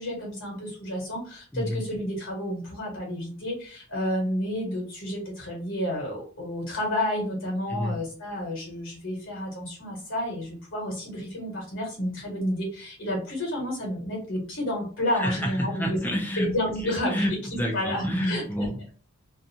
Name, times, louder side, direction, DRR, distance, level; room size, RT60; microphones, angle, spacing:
voice 1, 0.0-16.0 16.4-18.7, left 1 dB, 60° left, -1 dB, 1.2 m, -30 dB
voice 2, 1.5-1.8 7.7-8.0 15.1-16.5 16.8-18.9, equal, 10° left, 1 dB, 0.5 m, -29 dB
2.6 x 2.3 x 2.7 m, 0.41 s
head